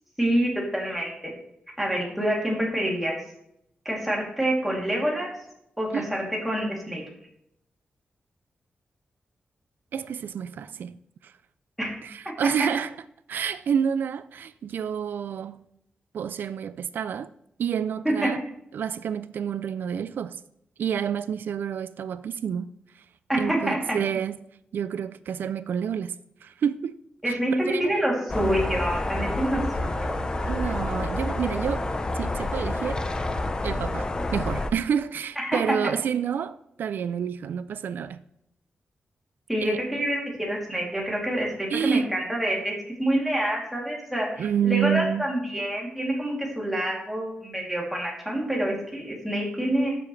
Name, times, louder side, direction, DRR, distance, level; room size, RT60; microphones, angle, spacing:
voice 1, 0.2-1.3 1.8-3.1 3.8-5.3 5.8-7.0 11.8-11.9 12.4-12.5 18.0-18.3 23.3-23.8 27.2-30.2 35.4-35.6 39.5-42.7 43.0-50.0, right 1 dB, 5° right, 2.9 m, -27 dB
voice 2, 9.9-11.0 11.2-11.3 12.0-12.9 13.3-15.6 16.1-17.3 17.6-18.4 18.7-20.4 20.8-23.0 23.4-24.4 24.7-26.1 26.4-27.0 27.3-27.9 30.4-31.9 32.1-33.0 33.6-38.2 39.6-39.8 41.7-42.1 44.4-45.3, right 8 dB, 85° right, 0.3 m, -29 dB
sound 1, 28.3-34.7, left 2 dB, 25° left, 0.7 m, -28 dB
12.5 x 7.1 x 3.2 m
wide cardioid pair, 150°, 3 cm